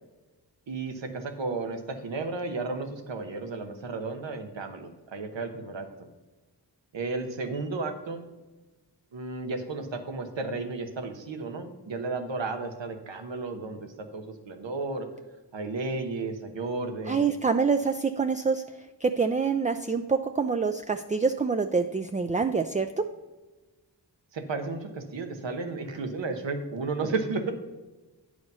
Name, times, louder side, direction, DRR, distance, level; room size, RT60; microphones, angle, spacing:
voice 1, 0.7-5.9 6.9-8.2 9.1-13.9 14.1-15.1 15.5-17.3 24.3-27.5, right 3 dB, 85° right, 6 dB, 1.1 m, -33 dB
voice 2, 17.1-18.6 19.0-23.0, right 5 dB, 20° right, 7 dB, 0.4 m, -26 dB
9.3 x 5.0 x 5.4 m, 1.2 s
cardioid pair, 55°, 43 cm